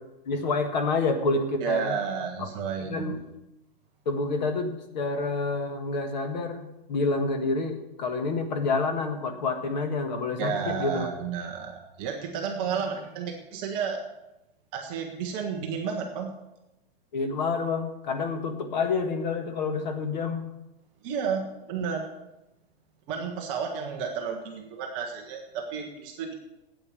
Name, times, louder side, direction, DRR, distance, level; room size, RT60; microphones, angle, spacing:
voice 1, 0.3-2.0 2.9-3.2 4.0-11.1 17.1-20.4, left 3 dB, 45° left, 7 dB, 1.5 m, -28 dB
voice 2, 1.6-3.1 10.4-14.0 14.7-16.3 21.0-22.1 23.1-26.3, right 6 dB, 15° right, 2 dB, 0.7 m, -32 dB
8.9 x 8.4 x 8.1 m, 0.94 s
hypercardioid pair, 170°, 30 cm